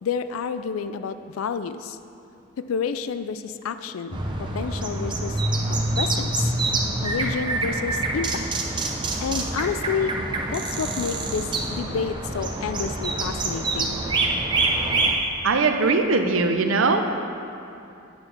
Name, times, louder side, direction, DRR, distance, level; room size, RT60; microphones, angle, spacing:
voice 1, 0.0-2.0 2.6-4.2 4.5-5.4 5.6-6.5 7.0-8.5 9.2-10.2 10.5-14.0, left 6 dB, 90° left, 11 dB, 0.4 m, -29 dB
sound 1, 4.1-15.1, right 2 dB, 20° right, 0.6 m, -26 dB
voice 2, 15.4-17.2, right 3 dB, 75° right, 6 dB, 0.6 m, -21 dB
9.3 x 4.5 x 6.4 m, 2.6 s
head